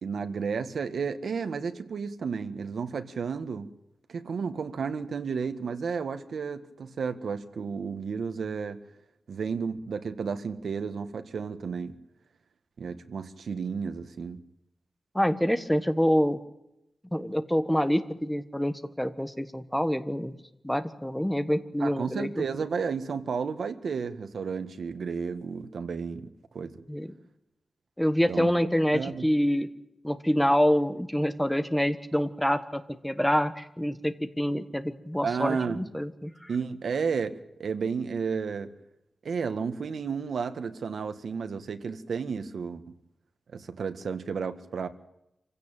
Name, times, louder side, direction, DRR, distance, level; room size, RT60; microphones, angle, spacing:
voice 1, 0.0-3.7 4.1-8.8 9.3-11.9 12.8-14.4 21.8-26.7 28.3-28.5 28.9-29.3 35.2-35.8 36.5-38.7 39.2-42.8 43.5-44.9, right 5 dB, 80° right, 9 dB, 1.7 m, -32 dB
voice 2, 15.1-16.4 17.1-20.3 20.6-22.3 26.9-27.1 28.0-29.7 30.0-36.5, equal, 5° left, 10 dB, 1.3 m, -26 dB
26.0 x 16.0 x 9.0 m, 0.87 s
wide cardioid pair, 160°, 0 cm